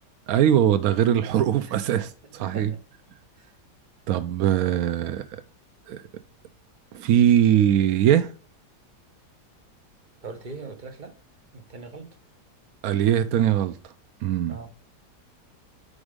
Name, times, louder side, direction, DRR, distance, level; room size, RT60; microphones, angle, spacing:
voice 1, 0.3-2.7 4.1-5.4 5.9-6.0 6.9-8.3 12.8-13.8 14.2-14.5, right 10 dB, 70° right, 0.9 m, -21 dB
voice 2, 2.4-2.8 3.3-3.6 10.2-11.1 11.5-12.2 14.5-14.7, right 4 dB, 35° right, 0.8 m, -41 dB
5.2 x 4.9 x 4.9 m
omnidirectional pair, 1.8 m